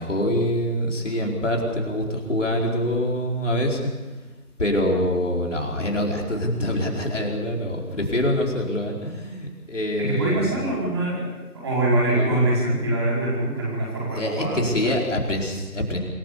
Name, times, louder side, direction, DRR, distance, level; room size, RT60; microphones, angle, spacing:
voice 1, 0.0-3.8 4.6-10.4 12.1-12.8 14.1-16.0, left 1 dB, 55° left, 0 dB, 4.7 m, -25 dB
voice 2, 10.0-14.7, right 1 dB, 15° right, -6 dB, 4.9 m, -24 dB
26.5 x 16.0 x 6.9 m, 1.2 s
figure-of-eight pair, 165°, 45 cm